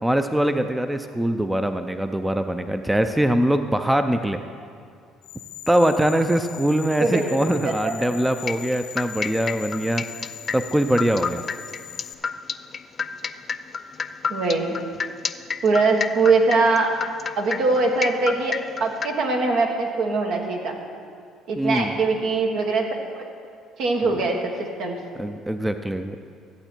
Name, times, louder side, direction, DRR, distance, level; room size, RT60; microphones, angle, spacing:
voice 1, 0.0-4.4 5.7-10.0 10.5-11.4 21.6-21.9 25.2-26.2, right 1 dB, 10° right, 8 dB, 0.5 m, -22 dB
sound 1, 5.2-12.1, left 12 dB, 80° left, 0.6 m, -40 dB
voice 2, 7.0-7.4 7.6-7.9 14.3-14.8 15.6-16.9 17.3-20.8 21.5-22.9 23.1-23.2 23.8-25.0, right 3 dB, 70° right, 1 dB, 1.6 m, -22 dB
sound 2, 8.5-19.1, left 5 dB, 40° left, 0.4 m, -28 dB
14.5 x 8.0 x 4.5 m, 2.2 s
supercardioid pair, 75°, 0 cm